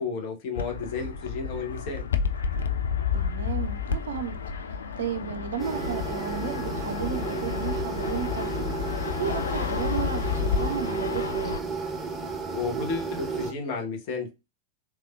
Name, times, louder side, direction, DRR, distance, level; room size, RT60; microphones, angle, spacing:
voice 1, 0.0-2.1 12.5-14.3, left 4 dB, 45° left, 1.0 m, -32 dB
Fixed-wing aircraft airplane, 0.6-11.6, left 6 dB, 70° left, 0.3 m, -30 dB
voice 2, 3.1-4.4 4.7-11.6, right 8 dB, 60° right, 0.4 m, -34 dB
sound 1, 5.6-13.5, right 4 dB, 15° right, 0.7 m, -33 dB
3.4 x 3.1 x 2.3 m
figure-of-eight pair, 90°, 0 cm